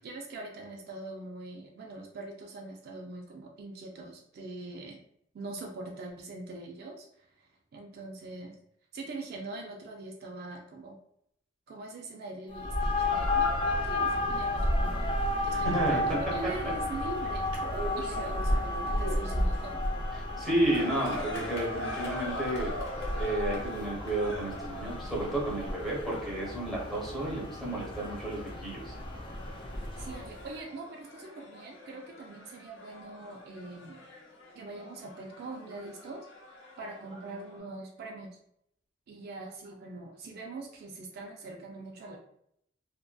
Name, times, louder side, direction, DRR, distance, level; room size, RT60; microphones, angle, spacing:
voice 1, 0.0-5.0 5.3-8.6 8.9-11.0 11.7-15.1 15.4-19.8 30.0-34.0 34.5-36.3 36.8-38.4 39.1-42.2, right 2 dB, 55° right, 1 dB, 0.3 m, -42 dB
sound 1, 12.5-30.4, left 1 dB, 25° left, 0.3 m, -32 dB
sound 2, 13.2-19.4, right 1 dB, 80° right, 0.9 m, -40 dB
voice 2, 15.6-16.0 16.6-16.7 20.4-22.7 23.2-28.9, right 1 dB, ahead, -4 dB, 0.8 m, -31 dB
sound 3, 20.7-37.6, left 1 dB, 70° left, 0.7 m, -44 dB
2.5 x 2.2 x 2.3 m, 0.72 s
head